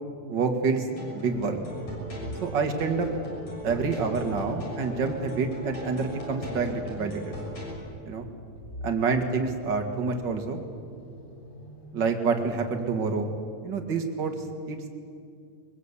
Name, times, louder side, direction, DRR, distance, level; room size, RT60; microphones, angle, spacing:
voice 1, 0.3-0.9 1.1-1.6 2.4-3.1 3.6-7.4 8.1-8.3 8.8-10.6 11.9-13.3 13.6-14.3 14.7-14.9, right 4 dB, 40° right, 5 dB, 2.2 m, -27 dB
sound 1, 0.8-7.8, equal, 60° left, 8.0 m, -39 dB
sound 2, 1.3-13.5, equal, 30° left, 5.0 m, -46 dB
22.5 x 22.5 x 8.3 m, 2.4 s
omnidirectional pair, 3.4 m